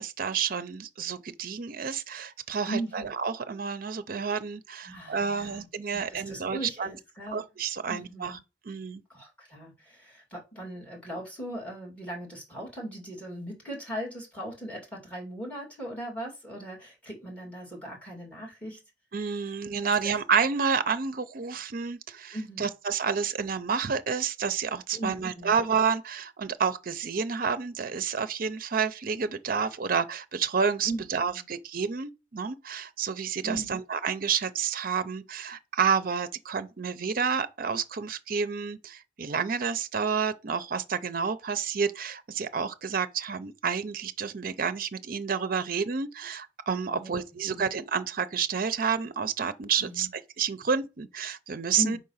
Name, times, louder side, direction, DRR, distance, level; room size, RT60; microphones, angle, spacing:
voice 1, 0.0-6.9 7.3-8.4 8.6-9.0 19.1-50.1 50.4-52.0, right 6 dB, 50° right, 0.5 m, -29 dB
voice 2, 2.7-3.1 4.8-5.7 5.9-7.4 7.9-8.4 9.1-18.8 19.8-19.9 22.3-22.7 24.9-25.5 30.8-31.4 33.4-33.7 46.9-47.2 47.5-47.6 49.8-50.1 51.8-52.0, right 1 dB, 10° left, 2.3 m, -38 dB
5.1 x 3.8 x 5.6 m
head